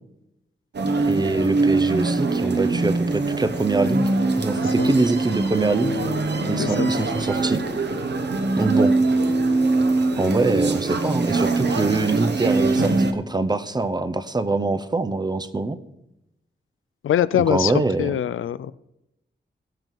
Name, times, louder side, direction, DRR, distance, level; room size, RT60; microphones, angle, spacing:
sound 1, 0.7-13.1, right 3 dB, 60° right, 1.1 m, -22 dB
voice 1, 1.0-6.0 6.5-7.6 8.6-8.9 10.1-15.8 17.5-18.2, right 3 dB, 20° right, 10 dB, 0.6 m, -24 dB
voice 2, 6.6-6.9 17.0-17.7 18.0-18.7, left 10 dB, 90° left, 17 dB, 0.4 m, -22 dB
16.5 x 7.7 x 4.6 m, 0.90 s
wide cardioid pair, 155°, 20 cm